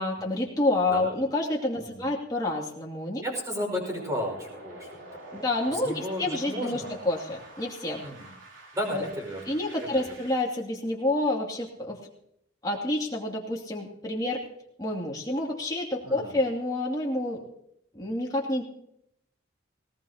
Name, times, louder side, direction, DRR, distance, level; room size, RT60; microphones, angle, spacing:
voice 1, 0.0-3.2 5.3-8.0 8.9-9.1 9.5-12.0 12.6-14.4 14.8-17.4 17.9-18.6, left 2 dB, 20° left, -2 dB, 2.6 m, -28 dB
voice 2, 3.2-5.1 5.3-5.4 5.7-6.9 8.0-8.3 8.7-9.4 10.0-10.1 16.0-16.3, equal, 20° right, 0 dB, 5.2 m, -34 dB
sound 1, 3.9-10.4, right 1 dB, 90° right, 3.4 m, -47 dB
19.0 x 18.5 x 2.9 m, 0.74 s
head